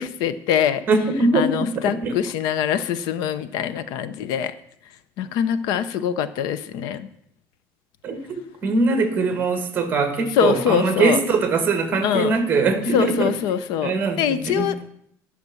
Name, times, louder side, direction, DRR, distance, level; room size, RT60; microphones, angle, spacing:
voice 1, 0.0-0.8 1.3-4.5 5.2-7.1 10.4-11.2 12.0-12.3 12.9-14.9, left 9 dB, 70° left, 14 dB, 0.6 m, -23 dB
voice 2, 0.9-2.1 8.0-13.4 13.8-14.7, right 3 dB, 25° right, 7 dB, 1.4 m, -22 dB
11.0 x 5.9 x 7.1 m, 0.70 s
cardioid pair, 180°, 7 cm